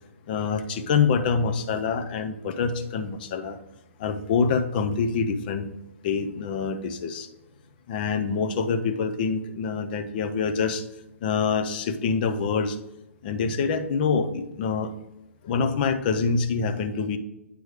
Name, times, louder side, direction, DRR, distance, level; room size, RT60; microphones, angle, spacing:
voice 1, 0.3-3.6 4.0-5.7 6.0-7.3 7.9-10.8 11.2-12.8 13.2-14.9 15.4-17.2, left 5 dB, 40° left, 9 dB, 0.7 m, -25 dB
8.4 x 3.1 x 4.9 m, 0.91 s
figure-of-eight pair, 130°, 8 cm